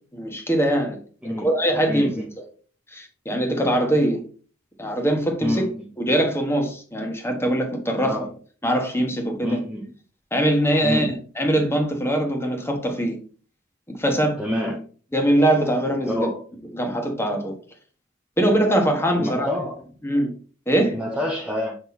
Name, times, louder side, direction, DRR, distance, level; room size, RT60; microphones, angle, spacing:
voice 1, 0.1-1.0 1.2-2.2 2.9-4.2 4.8-5.6 6.0-8.2 8.6-9.6 10.3-11.1 11.4-13.2 13.9-14.4 15.1-16.3 16.7-17.5 18.4-19.5 20.0-20.3 20.7-21.0, right 1 dB, 10° left, 1.5 m, -22 dB
voice 2, 1.9-2.3 5.4-5.8 8.0-8.3 9.4-9.9 10.8-11.2 14.4-14.9 16.1-16.4 19.2-19.8 20.9-21.8, left 1 dB, 5° right, 0.7 m, -27 dB
6.9 x 4.2 x 4.3 m
head